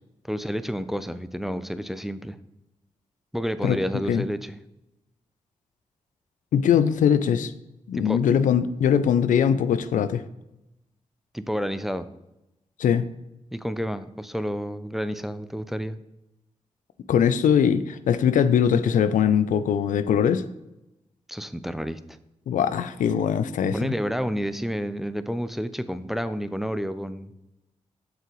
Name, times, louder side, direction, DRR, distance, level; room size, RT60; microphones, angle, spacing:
voice 1, 0.2-2.4 3.3-4.6 7.9-8.2 11.3-12.1 13.5-16.0 21.3-22.0 23.7-27.3, equal, ahead, 12 dB, 0.5 m, -30 dB
voice 2, 6.5-7.5 7.9-10.2 12.8-13.0 17.1-20.4 22.5-23.9, left 8 dB, 80° left, 13 dB, 0.4 m, -21 dB
7.5 x 5.6 x 3.1 m, 0.92 s
supercardioid pair, 45°, 13 cm